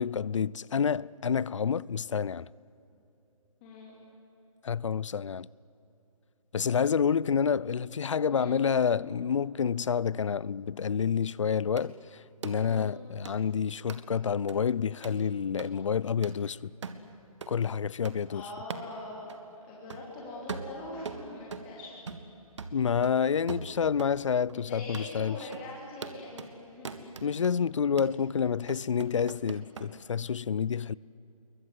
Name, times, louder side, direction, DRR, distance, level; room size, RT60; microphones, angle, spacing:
voice 1, 0.0-2.5 4.6-5.5 6.5-16.7 17.5-18.4 22.7-25.4 27.2-30.9, left 7 dB, 55° left, 0.5 m, -28 dB
voice 2, 3.6-4.0 8.3-8.6 12.7-12.9 18.3-19.3 19.6-22.0 24.5-27.1, left 2 dB, 15° left, 3.2 m, -43 dB
sound 1, 11.8-11.9 12.4-12.6 13.2-13.4 13.9-14.0 14.5-14.6 15.0-15.2 15.6-15.7 16.2-16.4 16.8-17.0 17.4-17.5 18.0-18.2 18.7-18.9 19.3-19.4 19.9-20.1 20.5-21.7 22.1-22.3 22.6-24.2 24.5-24.6 24.9-25.1 25.5-25.7 26.0-26.5 26.8-27.5 28.0-28.2 28.7-29.9, right 5 dB, 55° right, 1.9 m, -41 dB
28.0 x 22.5 x 8.0 m
hypercardioid pair, 175°, 18 cm